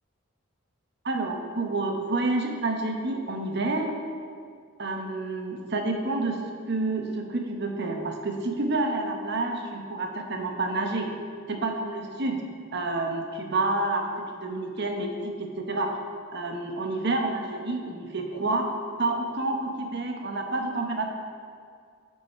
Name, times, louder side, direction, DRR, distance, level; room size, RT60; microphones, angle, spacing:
voice 1, 1.0-3.9 4.8-6.4 6.7-11.1 11.5-12.4 12.7-16.0 16.3-18.7 19.0-21.1, right 2 dB, 55° right, 3 dB, 1.0 m, -29 dB
7.8 x 5.6 x 5.6 m, 2.2 s
head